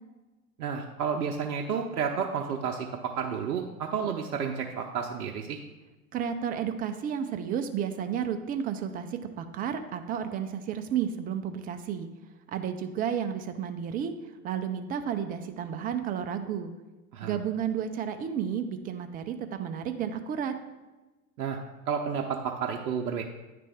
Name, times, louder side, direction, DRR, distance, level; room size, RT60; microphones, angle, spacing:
voice 1, 0.6-5.6 17.1-17.4 21.4-21.6 21.9-23.2, right 6 dB, 80° right, 1 dB, 0.7 m, -31 dB
voice 2, 6.1-12.1 12.5-14.1 14.4-16.7 17.2-20.5, right 8 dB, 20° right, 7 dB, 0.4 m, -32 dB
9.4 x 3.3 x 3.4 m, 1.1 s
hypercardioid pair, 90°, 45 cm